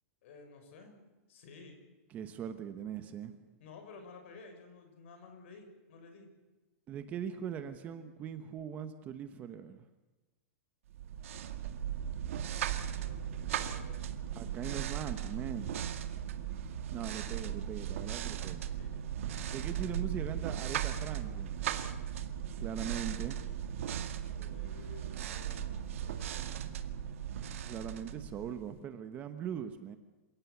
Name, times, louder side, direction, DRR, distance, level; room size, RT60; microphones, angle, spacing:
voice 1, 0.2-1.0 1.3-1.8 3.6-6.3 13.0-14.1 18.7-19.3 24.3-26.5, left 4 dB, 50° left, 6 dB, 6.0 m, -54 dB
voice 2, 2.1-3.4 6.9-9.8 14.3-15.7 16.9-18.6 19.5-21.6 22.6-23.4 27.6-30.0, right 8 dB, 20° right, 9 dB, 1.0 m, -40 dB
sound 1, 10.9-28.8, right 9 dB, 60° right, 1.8 m, -37 dB
27.5 x 17.0 x 8.2 m, 1.2 s
supercardioid pair, 175°, 8 cm